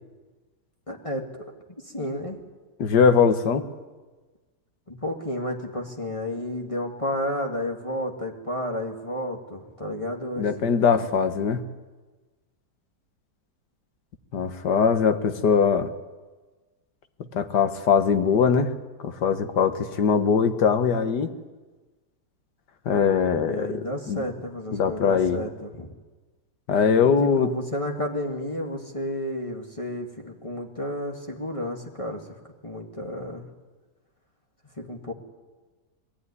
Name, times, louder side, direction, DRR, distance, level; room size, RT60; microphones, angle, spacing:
voice 1, 0.9-1.5 1.8-2.4 4.9-10.8 23.4-25.9 27.0-32.4 32.6-33.5 34.8-35.1, left 1 dB, 20° left, 1 dB, 1.9 m, -32 dB
voice 2, 2.8-3.7 10.4-11.6 14.3-15.9 17.3-18.7 19.0-21.3 22.9-23.7 24.1-24.2 24.7-25.4 26.7-27.5, left 6 dB, 75° left, 9 dB, 1.8 m, -21 dB
21.0 x 15.0 x 9.7 m, 1.3 s
omnidirectional pair, 1.8 m